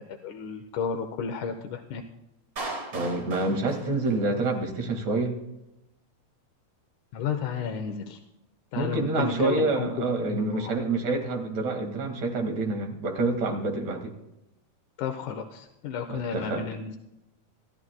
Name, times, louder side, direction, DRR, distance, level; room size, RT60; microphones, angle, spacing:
voice 1, 0.0-2.0 7.1-8.2 8.7-10.8 15.0-17.0, left 6 dB, 75° left, 5 dB, 2.0 m, -32 dB
Clapping, 2.6-4.6, right 2 dB, 30° right, 1.9 m, -38 dB
voice 2, 2.9-5.4 8.7-14.1 16.1-16.7, right 2 dB, 50° right, 3 dB, 3.0 m, -27 dB
27.5 x 12.5 x 2.3 m, 0.88 s
omnidirectional pair, 4.4 m